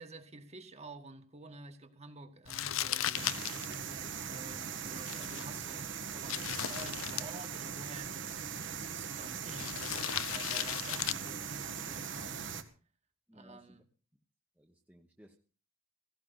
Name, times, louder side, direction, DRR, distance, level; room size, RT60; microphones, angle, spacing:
voice 1, 0.0-12.5 13.3-13.8, right 2 dB, 30° right, 1.7 m, -50 dB
Crumpling crinkling, 2.5-12.6, left 11 dB, 75° left, 0.7 m, -39 dB
sound 1, 3.1-12.6, right 7 dB, 60° right, 1.6 m, -40 dB
voice 2, 13.3-13.8 14.6-15.4, equal, 5° right, 1.1 m, -59 dB
17.0 x 16.0 x 4.1 m
head